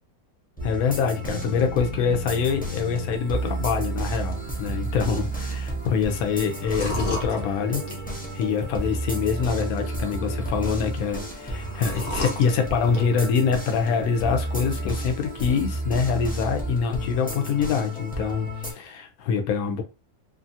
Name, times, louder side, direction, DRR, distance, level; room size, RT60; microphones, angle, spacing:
voice 1, 0.6-7.8 8.3-19.8, left 6 dB, 75° left, 1.1 m, -25 dB
sound 1, 0.6-18.7, right 1 dB, 10° left, 0.4 m, -32 dB
sound 2, 1.2-8.9, right 2 dB, 70° right, 0.7 m, -41 dB
sound 3, 3.4-15.5, equal, 50° left, 0.9 m, -38 dB
2.7 x 2.5 x 2.6 m
omnidirectional pair, 1.6 m